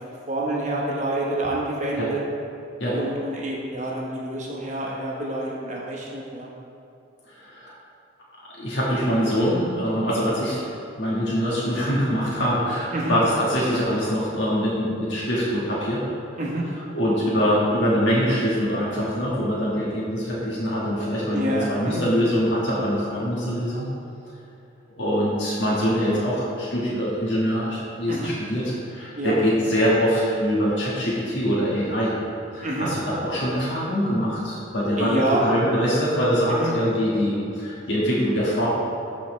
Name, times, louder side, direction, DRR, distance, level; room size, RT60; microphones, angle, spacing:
voice 1, 0.3-2.2 2.9-6.5 12.9-13.1 16.4-16.7 21.3-22.0 28.1-28.3 29.1-29.3 32.6-32.9 35.0-35.4 36.5-36.7, right 1 dB, 40° right, -3 dB, 1.0 m, -27 dB
voice 2, 7.3-7.7 8.6-10.7 11.0-16.0 16.9-23.9 25.0-32.1 32.5-38.7, equal, 70° left, -7 dB, 1.5 m, -23 dB
12.5 x 4.2 x 3.2 m, 2.6 s
head